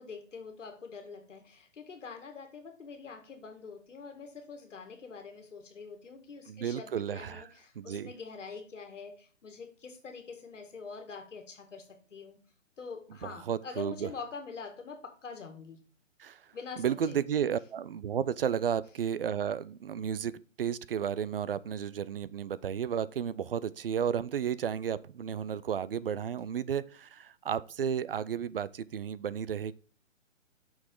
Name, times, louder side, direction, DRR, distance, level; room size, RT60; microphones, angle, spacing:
voice 1, 0.0-12.4 12.8-15.8 16.5-17.2, left 5 dB, 70° left, 1.8 m, -45 dB
voice 2, 6.5-7.5 7.8-8.1 13.2-14.1 16.2-16.4 16.8-29.7, right 8 dB, 45° right, 0.5 m, -33 dB
8.4 x 6.2 x 3.7 m
figure-of-eight pair, 140°, 38 cm